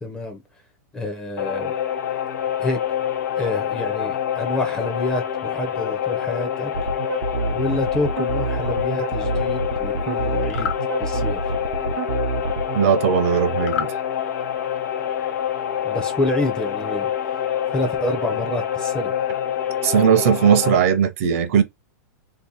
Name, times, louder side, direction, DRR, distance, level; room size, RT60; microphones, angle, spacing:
voice 1, 0.0-0.4 0.9-1.7 2.6-2.8 3.4-6.7 7.5-10.7 11.0-11.4 15.8-17.1 17.7-19.1, left 1 dB, 10° left, 0.5 m, -27 dB
sound 1, 1.4-20.8, left 9 dB, 70° left, 0.7 m, -26 dB
sound 2, 6.7-12.8, right 4 dB, 85° right, 0.7 m, -27 dB
sound 3, 10.4-10.8 13.6-14.0, left 9 dB, 55° left, 1.0 m, -28 dB
voice 2, 12.7-13.9 19.8-21.6, right 8 dB, 50° right, 0.6 m, -18 dB
2.8 x 2.5 x 3.8 m
supercardioid pair, 175°, 10 cm